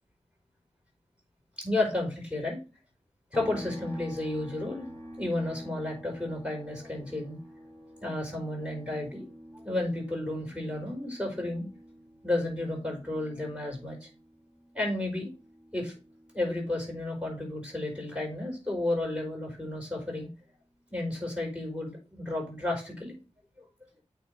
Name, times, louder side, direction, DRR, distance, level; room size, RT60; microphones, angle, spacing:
voice 1, 1.6-2.6 3.3-4.9 5.2-7.4 8.0-9.3 9.6-11.7 12.2-14.1 14.7-15.3 15.7-15.9 16.3-20.3 20.9-23.2, left 2 dB, 10° right, 0 dB, 4.7 m, -32 dB
sound 1, 3.3-16.9 17.2-19.4, equal, 20° left, 4.7 m, -49 dB
8.7 x 3.6 x 5.2 m, 0.31 s
wide cardioid pair, 80°, 12 cm